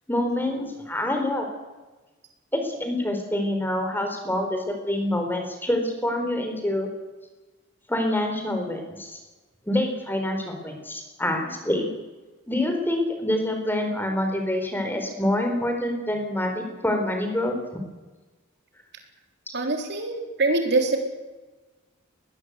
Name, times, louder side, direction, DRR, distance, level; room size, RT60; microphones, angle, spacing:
voice 1, 0.1-1.5 2.5-6.9 7.9-9.2 9.7-11.9 12.5-17.6, left 1 dB, 10° left, 4 dB, 4.2 m, -26 dB
voice 2, 19.5-21.1, right 2 dB, 50° right, 4 dB, 3.9 m, -24 dB
21.5 x 20.0 x 8.2 m, 1.2 s
head